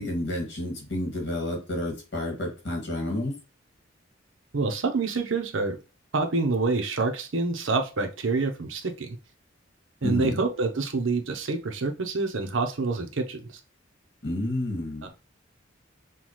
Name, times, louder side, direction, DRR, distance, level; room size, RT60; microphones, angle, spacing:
voice 1, 0.0-3.3 10.0-10.4 14.2-15.1, left 1 dB, 60° left, 0 dB, 1.7 m, -30 dB
voice 2, 4.5-5.8 6.1-9.2 10.0-13.5 15.0-15.1, right 3 dB, 80° right, 4 dB, 0.7 m, -27 dB
5.7 x 2.3 x 3.1 m, 0.30 s
head